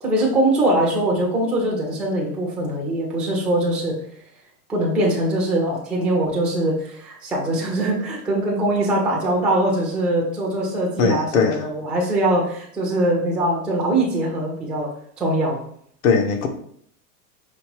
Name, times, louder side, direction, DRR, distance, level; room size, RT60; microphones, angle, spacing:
voice 1, 0.0-4.0 4.7-14.9 15.2-15.6, right 1 dB, ahead, -3 dB, 0.4 m, -22 dB
voice 2, 11.0-11.7 16.0-16.5, left 5 dB, 40° left, 6 dB, 0.7 m, -19 dB
5.2 x 2.8 x 3.1 m, 0.64 s
supercardioid pair, 145°, 46 cm